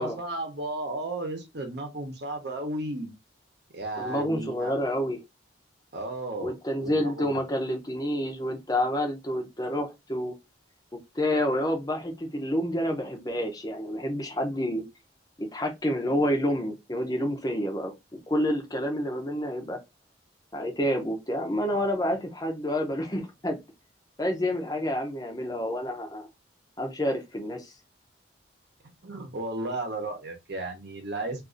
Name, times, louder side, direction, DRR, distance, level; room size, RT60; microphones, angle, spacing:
voice 1, 0.0-3.1 3.7-4.8 5.9-6.6 6.8-7.4 29.0-31.4, right 2 dB, 60° right, 0.9 m, -34 dB
voice 2, 4.0-5.2 6.4-10.3 10.9-14.8 15.4-17.9 18.3-19.8 20.5-23.6 24.2-26.3 26.8-27.7, equal, 20° left, 0.6 m, -28 dB
2.6 x 2.6 x 3.7 m
head